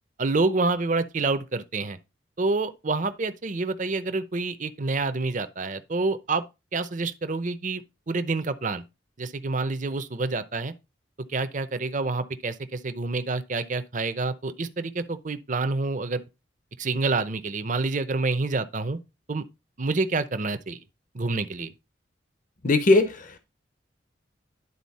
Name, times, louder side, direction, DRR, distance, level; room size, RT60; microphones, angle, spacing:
voice 1, 0.2-2.0 2.4-6.4 6.7-8.8 9.2-10.7 11.3-16.2 16.8-19.0 19.3-19.4 19.8-20.8 21.1-21.7, right 3 dB, 40° right, 0.7 m, -27 dB
voice 2, 22.6-23.4, left 2 dB, 45° left, 0.8 m, -20 dB
11.0 x 4.1 x 4.2 m
head